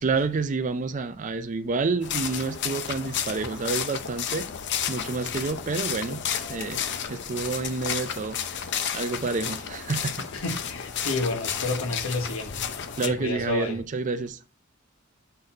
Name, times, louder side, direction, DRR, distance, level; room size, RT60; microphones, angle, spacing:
voice 1, 0.0-4.5 4.9-6.2 6.5-6.8 7.1-8.4 8.9-10.3 13.0-14.4, right 4 dB, 35° right, 0.4 m, -29 dB
sound 1, 2.0-13.1, left 8 dB, 55° left, 0.6 m, -32 dB
voice 2, 10.3-12.6 13.0-13.8, left 2 dB, 75° left, 1.2 m, -30 dB
6.5 x 4.0 x 4.2 m
head